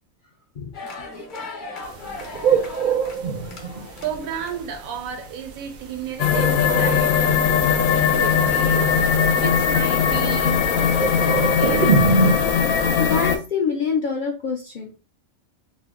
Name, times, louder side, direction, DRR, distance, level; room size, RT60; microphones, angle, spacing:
sound 1, 0.7-4.8, left 2 dB, 45° left, 0.8 m, -37 dB
sound 2, 1.8-12.6, right 4 dB, 70° right, 0.5 m, -25 dB
voice 1, 4.0-9.0 9.3-12.0, right 8 dB, 90° right, 1.0 m, -33 dB
sound 3, 6.2-13.4, left 7 dB, 90° left, 1.0 m, -19 dB
voice 2, 13.0-15.0, left 6 dB, 70° left, 0.5 m, -25 dB
2.7 x 2.1 x 3.5 m
omnidirectional pair, 1.4 m